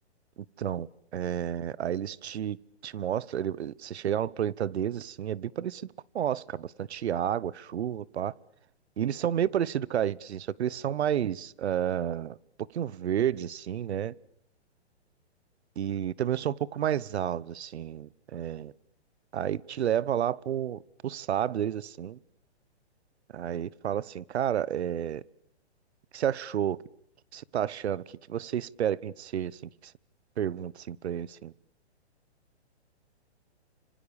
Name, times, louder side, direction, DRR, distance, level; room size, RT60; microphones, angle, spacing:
voice 1, 0.6-2.6 2.8-8.3 9.0-12.4 12.7-14.1 15.8-18.7 19.3-22.2 23.3-25.2 26.1-26.8 27.3-28.0 28.3-29.9 30.4-31.5, right 10 dB, 70° right, 1.0 m, -31 dB
26.5 x 26.0 x 7.0 m
hypercardioid pair, 160°, 34 cm